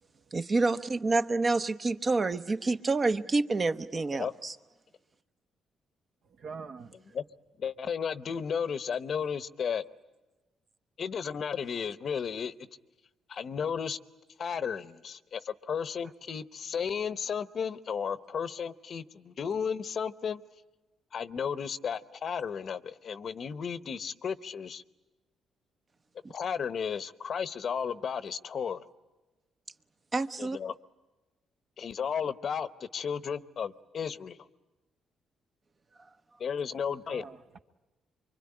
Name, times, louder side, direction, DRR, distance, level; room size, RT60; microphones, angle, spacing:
voice 1, 0.3-4.5 30.1-30.6, right 3 dB, 35° right, 0.9 m, -28 dB
voice 2, 6.2-7.2 36.7-37.6, right 5 dB, 60° right, 1.2 m, -46 dB
voice 3, 7.6-9.8 11.0-12.5 13.3-14.0 14.4-20.4 21.1-24.8 26.3-28.8 30.4-30.7 31.8-34.4 36.4-37.2, left 7 dB, 55° left, 0.8 m, -34 dB
25.0 x 24.0 x 9.8 m
cardioid pair, 90°, 0 cm